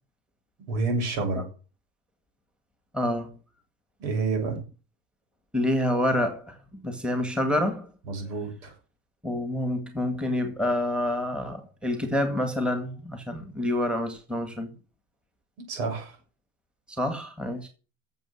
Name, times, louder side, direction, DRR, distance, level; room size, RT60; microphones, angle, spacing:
voice 1, 0.7-1.5 4.0-4.6 8.1-8.7 15.6-16.2, right 3 dB, 85° right, 6.8 m, -29 dB
voice 2, 2.9-3.3 5.5-7.9 9.2-14.7 17.0-17.7, left 1 dB, ahead, 1.9 m, -27 dB
12.0 x 7.5 x 7.3 m
cardioid pair, 160°, 42 cm